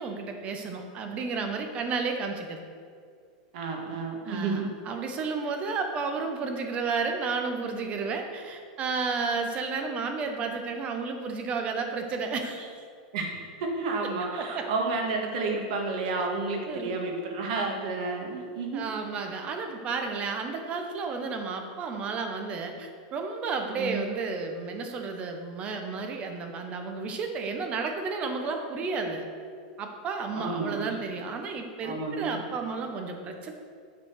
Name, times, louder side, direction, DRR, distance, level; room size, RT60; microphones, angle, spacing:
voice 1, 0.0-2.6 4.2-12.8 14.4-14.7 16.7-17.0 18.7-29.2 29.8-33.5, right 4 dB, 30° right, 4 dB, 1.0 m, -32 dB
voice 2, 3.5-4.7 13.1-18.8 23.7-24.1 30.3-30.9 31.8-32.4, right 3 dB, 65° right, 1 dB, 1.7 m, -31 dB
9.8 x 4.2 x 6.5 m, 2.2 s
supercardioid pair, 150°, 4 cm